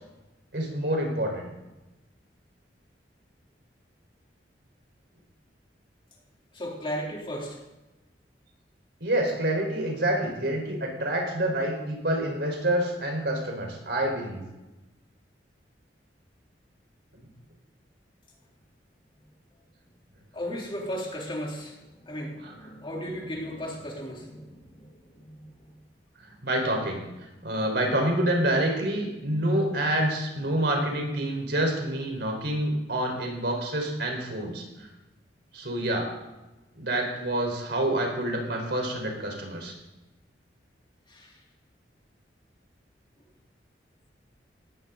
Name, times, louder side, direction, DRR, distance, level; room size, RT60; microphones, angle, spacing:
voice 1, 0.5-1.5 9.0-14.4 22.4-22.5 26.2-27.0 27.4-34.9 35.5-36.1 36.8-39.7, right 1 dB, 65° right, 2 dB, 4.4 m, -27 dB
voice 2, 6.5-7.6 20.3-25.8 41.1-41.4, equal, 30° left, -1 dB, 3.4 m, -36 dB
18.5 x 15.5 x 4.0 m, 1.0 s
head